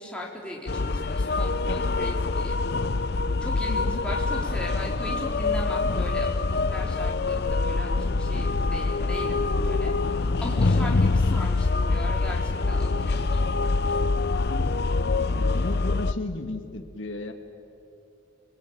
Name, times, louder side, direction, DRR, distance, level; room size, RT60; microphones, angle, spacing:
voice 1, 0.0-2.9 3.4-13.4 13.9-14.0, left 1 dB, 5° left, -3 dB, 4.1 m, -38 dB
sound 1, 0.7-16.1, left 3 dB, 50° left, 0.6 m, -25 dB
voice 2, 3.7-4.0 14.3-14.8 15.3-17.3, left 2 dB, 75° left, 6 dB, 1.8 m, -35 dB
29.0 x 21.5 x 9.1 m, 2.7 s
head